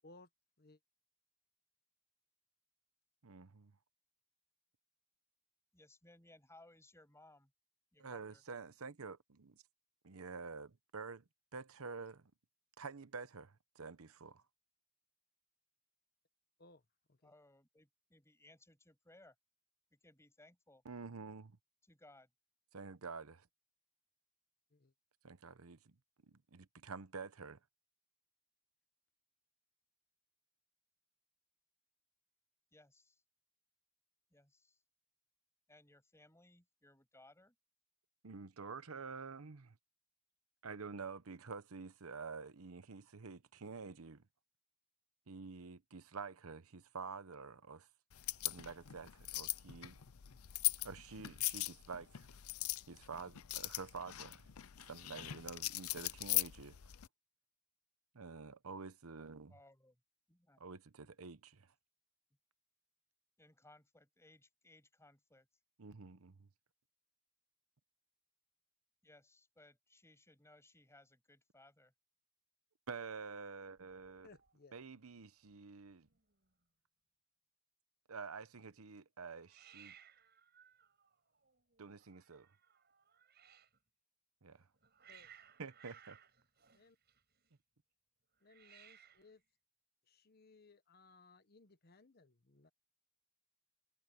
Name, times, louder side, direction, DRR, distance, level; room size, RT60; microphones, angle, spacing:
voice 1, 3.2-3.7 8.0-9.6 10.0-11.2 11.5-12.3 12.8-14.4 20.8-21.6 22.7-23.5 25.2-25.9 26.3-27.6 38.2-39.8 40.6-44.2 45.3-47.9 48.4-50.0 50.8-52.3 52.9-54.4 54.9-56.8 58.1-59.5 60.6-61.7 65.8-66.5 72.9-74.3 74.7-76.1 78.1-79.9 81.8-82.5 84.4-84.7 85.6-86.2, right 4 dB, 90° right, 0.9 m, -49 dB
voice 2, 5.7-7.5 7.9-8.4 17.2-19.4 19.9-20.8 21.8-22.3 32.7-33.2 34.3-34.8 35.7-37.6 59.5-60.0 60.3-60.6 63.4-65.5 69.0-71.9, left 2 dB, 15° left, 7.4 m, -64 dB
sound 1, 48.1-57.1, left 17 dB, 85° left, 0.6 m, -40 dB
Hiss, 73.8-74.5 74.8-75.2 75.5-75.6 75.8-76.5 79.5-83.8 84.5-87.5 88.4-89.4, right 9 dB, 50° right, 7.9 m, -63 dB
voice 3, 74.2-74.8 85.1-85.3 86.7-87.0 88.4-89.4 90.1-92.7, left 3 dB, 45° left, 1.1 m, -63 dB
head